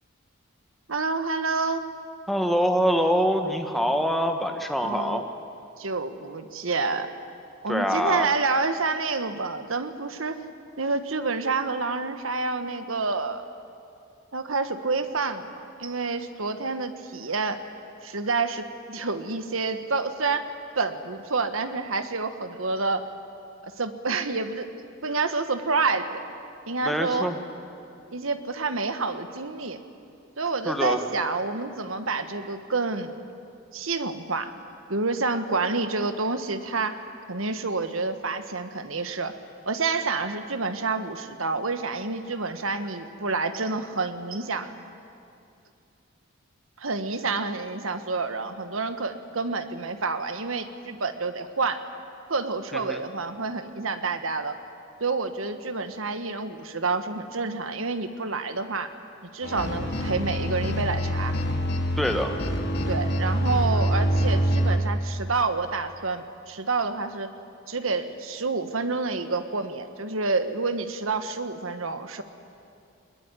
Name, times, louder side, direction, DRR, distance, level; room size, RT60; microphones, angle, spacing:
voice 1, 0.9-1.9 4.8-5.2 5.8-7.1 7.6-10.4 10.8-13.4 14.3-17.6 18.0-23.1 23.6-24.7 25.0-26.2 26.7-27.3 28.1-29.8 30.4-33.2 33.7-34.5 34.9-37.0 37.3-39.3 39.7-44.7 46.8-51.8 52.3-54.5 55.0-58.9 59.2-61.3 62.9-67.3 67.7-72.2, right 3 dB, 75° right, 9 dB, 1.5 m, -28 dB
voice 2, 2.3-5.2 7.7-8.3 26.8-27.4 30.6-31.0 52.7-53.0 62.0-62.3, equal, ahead, 4 dB, 1.5 m, -24 dB
sound 1, 59.4-64.8, equal, 50° left, 2.4 m, -25 dB
21.5 x 21.0 x 9.9 m, 2.5 s
head